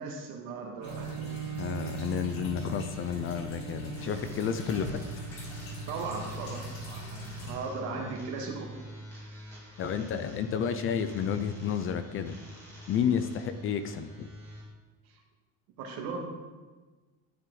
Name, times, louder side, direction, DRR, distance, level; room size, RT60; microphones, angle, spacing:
voice 1, 0.0-1.5 5.9-8.7 15.1-15.2 15.8-16.3, right 4 dB, 75° right, 0 dB, 1.9 m, -38 dB
sound 1, 0.8-7.6, equal, 60° left, 2.7 m, -41 dB
Bowed string instrument, 0.8-6.4, right 8 dB, 50° right, 1.1 m, -42 dB
voice 2, 1.6-5.0 9.8-12.4 12.9-14.3, left 8 dB, 35° left, 10 dB, 0.5 m, -31 dB
sound 2, 3.9-14.6, equal, 5° left, 2.0 m, -45 dB
11.5 x 7.5 x 3.9 m, 1.3 s
cardioid pair, 170°, 37 cm